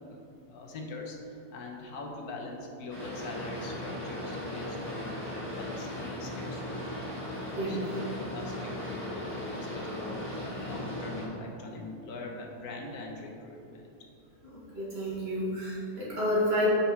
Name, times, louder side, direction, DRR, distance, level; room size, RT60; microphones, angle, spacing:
voice 1, 0.5-6.9 7.7-13.9, left 2 dB, 70° left, 1 dB, 1.3 m, -42 dB
Boat Water vehicle, 2.9-11.3, left 1 dB, 10° left, 1.2 m, -37 dB
voice 2, 14.7-16.7, equal, 40° right, -8 dB, 1.9 m, -29 dB
5.9 x 4.8 x 4.4 m, 2.7 s
omnidirectional pair, 1.7 m